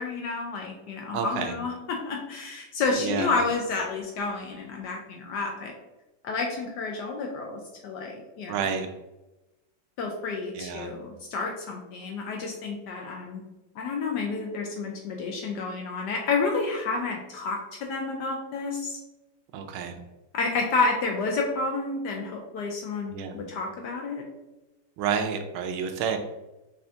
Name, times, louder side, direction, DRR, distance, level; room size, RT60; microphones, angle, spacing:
voice 1, 0.0-5.7 6.2-8.7 10.0-13.4 13.8-19.0 20.3-24.2, left 3 dB, 75° left, 1 dB, 1.0 m, -30 dB
voice 2, 1.1-1.5 3.0-3.3 8.5-8.9 10.6-10.9 19.5-19.9 23.1-23.4 25.0-26.2, right 7 dB, 90° right, 6 dB, 1.4 m, -29 dB
5.3 x 2.5 x 2.7 m, 1.0 s
omnidirectional pair, 2.2 m